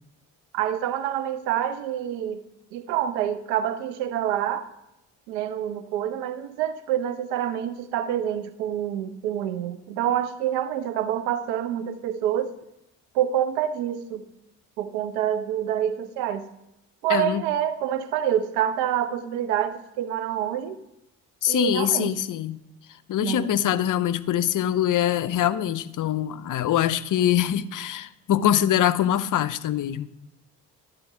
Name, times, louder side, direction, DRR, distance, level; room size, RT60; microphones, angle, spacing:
voice 1, 0.5-2.4 2.7-4.7 5.3-12.5 13.1-14.3 14.8-16.5 17.0-20.8 21.5-22.1 23.2-23.5, right 10 dB, 75° right, 13 dB, 0.7 m, -27 dB
voice 2, 17.1-17.5 21.4-22.6 23.1-30.1, left 11 dB, 45° left, 16 dB, 0.5 m, -23 dB
12.0 x 4.3 x 4.9 m, 0.88 s
figure-of-eight pair, 40°, 47 cm